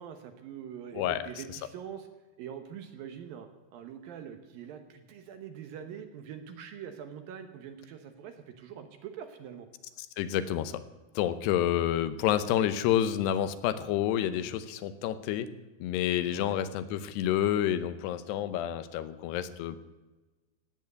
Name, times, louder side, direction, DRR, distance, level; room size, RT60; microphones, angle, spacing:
voice 1, 0.0-2.1 2.4-9.7 16.2-16.6, right 8 dB, 70° right, 7 dB, 2.4 m, -44 dB
voice 2, 10.2-10.8 11.2-15.5 15.8-19.8, left 11 dB, 80° left, 13 dB, 2.9 m, -29 dB
16.5 x 9.1 x 9.5 m, 1.2 s
omnidirectional pair, 4.9 m